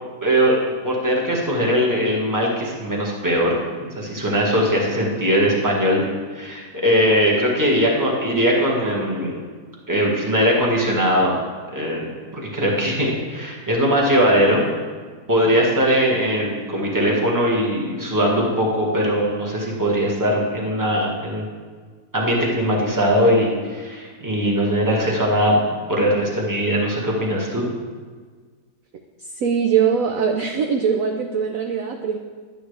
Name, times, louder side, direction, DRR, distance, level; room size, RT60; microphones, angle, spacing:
voice 1, 0.2-0.6 0.8-6.0 6.3-9.4 9.9-11.4 11.7-12.1 12.3-14.6 15.3-21.5 22.1-25.5 25.9-27.6, equal, 10° right, -3 dB, 1.5 m, -20 dB
voice 2, 29.2-32.2, right 7 dB, 65° right, 4 dB, 0.9 m, -21 dB
11.0 x 8.9 x 3.3 m, 1.5 s
omnidirectional pair, 1.8 m